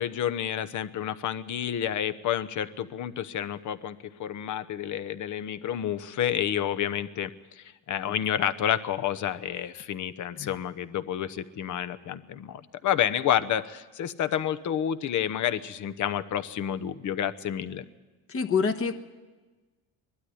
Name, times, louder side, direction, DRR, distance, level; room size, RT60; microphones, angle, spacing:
voice 1, 0.0-17.8, left 10 dB, 55° left, 12 dB, 1.0 m, -29 dB
voice 2, 18.3-18.9, left 5 dB, 40° left, 5 dB, 1.3 m, -26 dB
20.5 x 12.5 x 10.0 m, 1.3 s
cardioid pair, 105°, 37 cm